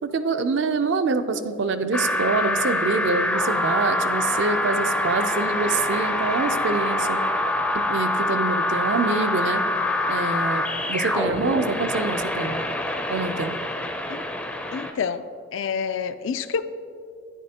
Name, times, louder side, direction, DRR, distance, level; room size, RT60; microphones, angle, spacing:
voice 1, 0.0-7.2 7.9-9.6 10.1-10.6 10.9-12.6 13.1-13.6, right 4 dB, 65° right, 9 dB, 0.5 m, -25 dB
sound 1, 1.9-14.9, left 1 dB, 5° left, 0.4 m, -25 dB
voice 2, 14.7-16.6, left 6 dB, 80° left, 12 dB, 0.4 m, -28 dB
11.0 x 9.4 x 2.8 m, 2.4 s
head